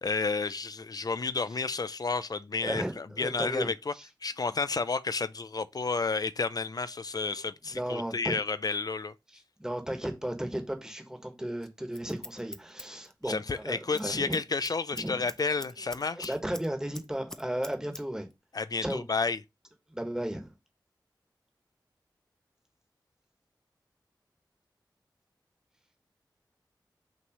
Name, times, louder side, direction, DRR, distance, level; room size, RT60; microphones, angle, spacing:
voice 1, 0.0-3.9 4.2-9.1 13.3-16.3 18.5-19.4, left 4 dB, 55° left, 0.5 m, -31 dB
voice 2, 2.6-4.1 7.2-8.4 9.3-15.2 16.0-18.3 18.8-19.0 19.9-20.5, right 1 dB, 10° right, 1.5 m, -35 dB
Scissors, 11.6-13.6 13.9-14.1 14.3-16.7 16.9-18.0 18.3-18.4, equal, 5° left, 0.6 m, -44 dB
5.8 x 3.2 x 5.3 m
wide cardioid pair, 75°, 8 cm